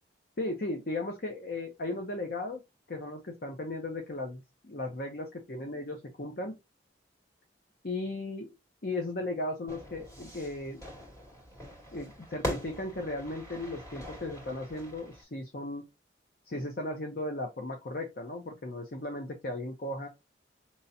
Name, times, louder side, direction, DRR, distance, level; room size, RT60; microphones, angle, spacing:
voice 1, 0.4-2.6 2.9-6.6 7.8-8.5 8.8-10.8 11.9-15.8 16.5-20.1, left 2 dB, 55° left, 4 dB, 0.8 m, -36 dB
Fire / Fireworks, 9.7-15.2, equal, 15° left, 2.0 m, -41 dB
5.5 x 3.0 x 2.7 m, 0.23 s
head